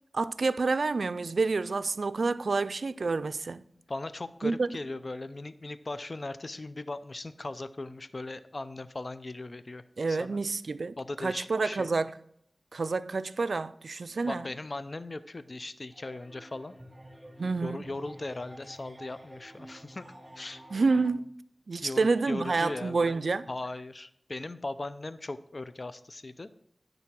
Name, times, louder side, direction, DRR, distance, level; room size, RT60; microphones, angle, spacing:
voice 1, 0.1-3.6 4.4-4.7 10.0-12.1 12.7-14.5 17.4-17.8 20.7-21.3 21.7-23.5, right 4 dB, 85° right, 0.3 m, -28 dB
voice 2, 3.9-9.8 10.1-10.4 11.0-11.9 14.3-16.7 17.6-20.0 20.4-20.6 21.8-23.2 23.5-26.5, left 2 dB, 55° left, 0.5 m, -38 dB
sound 1, 15.9-21.1, right 1 dB, 30° right, 3.6 m, -50 dB
10.5 x 4.0 x 7.4 m
cardioid pair, 40°, 0 cm